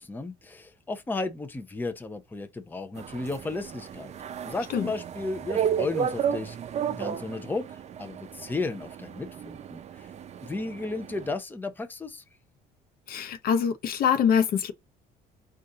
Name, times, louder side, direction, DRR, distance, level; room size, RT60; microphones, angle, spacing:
voice 1, 0.0-4.1 4.5-6.6 6.9-10.1 10.4-12.2, left 3 dB, 10° left, 0.6 m, -34 dB
sound 1, 3.0-11.3, right 8 dB, 40° right, 0.5 m, -33 dB
voice 2, 13.1-14.7, left 7 dB, 60° left, 0.7 m, -24 dB
4.0 x 2.5 x 3.8 m
cardioid pair, 110°, 17 cm